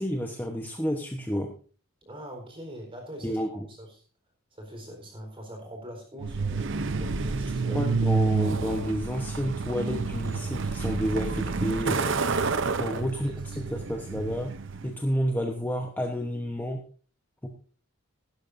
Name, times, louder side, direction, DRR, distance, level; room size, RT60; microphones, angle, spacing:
voice 1, 0.0-1.5 3.2-3.5 7.7-12.1 12.8-13.3 13.7-14.5 14.8-16.8 17.4-17.5, equal, 10° left, 2 dB, 1.0 m, -30 dB
voice 2, 2.0-3.4 3.7-4.0 4.5-6.7 7.0-7.9 12.9-13.9, right 1 dB, 25° right, 3 dB, 4.3 m, -42 dB
Truck, 6.2-14.9, right 4 dB, 60° right, 0.7 m, -29 dB
16.5 x 12.0 x 2.7 m, 0.41 s
head